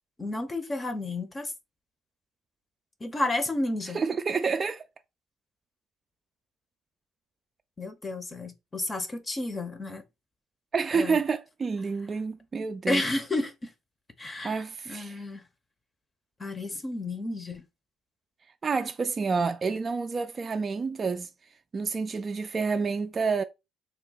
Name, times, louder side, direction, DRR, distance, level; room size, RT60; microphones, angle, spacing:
voice 1, 0.2-1.5 3.0-4.0 7.8-10.0 10.9-11.2 12.9-13.7 14.2-15.4 16.4-17.6, left 2 dB, 25° left, 0.7 m, -31 dB
voice 2, 3.9-4.9 10.7-13.0 14.4-15.2 18.6-21.3 21.7-23.4, right 5 dB, 35° right, 0.3 m, -29 dB
3.4 x 2.2 x 3.8 m
supercardioid pair, 80°, 0 cm